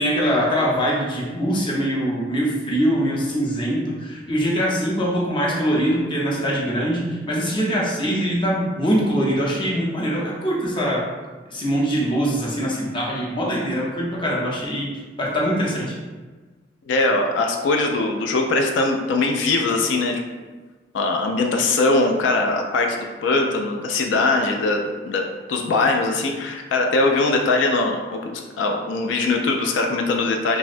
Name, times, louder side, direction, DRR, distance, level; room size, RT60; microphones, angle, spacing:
voice 1, 0.0-11.1 11.5-14.9 15.2-15.9, equal, 25° left, -4 dB, 0.6 m, -23 dB
voice 2, 16.9-20.2 20.9-25.2 25.5-30.6, left 3 dB, 90° left, 2 dB, 0.3 m, -21 dB
3.5 x 2.1 x 2.5 m, 1.3 s
head